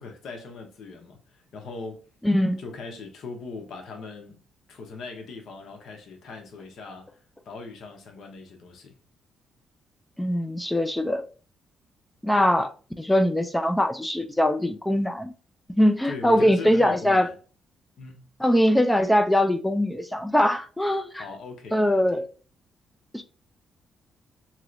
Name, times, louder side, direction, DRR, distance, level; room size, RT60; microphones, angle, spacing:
voice 1, 0.0-2.1 2.6-4.4 4.7-9.0 16.0-17.3 18.0-18.3 21.2-22.2, left 4 dB, 65° left, 0.9 m, -40 dB
voice 2, 2.2-2.6 10.2-11.2 12.2-12.7 13.0-15.3 15.7-17.3 18.4-21.2 21.7-22.3 23.1-23.2, left 1 dB, 5° left, 0.4 m, -22 dB
3.0 x 2.9 x 2.5 m
cardioid pair, 90°, 0 cm